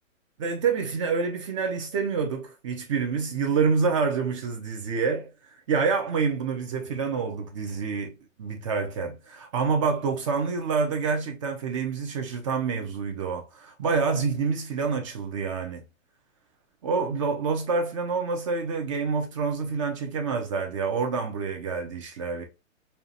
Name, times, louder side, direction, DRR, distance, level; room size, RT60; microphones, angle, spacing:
voice 1, 0.4-8.1 8.4-15.8 16.8-22.4, right 5 dB, 25° right, 0.5 m, -27 dB
5.5 x 2.4 x 2.7 m
hypercardioid pair, 145°, 41 cm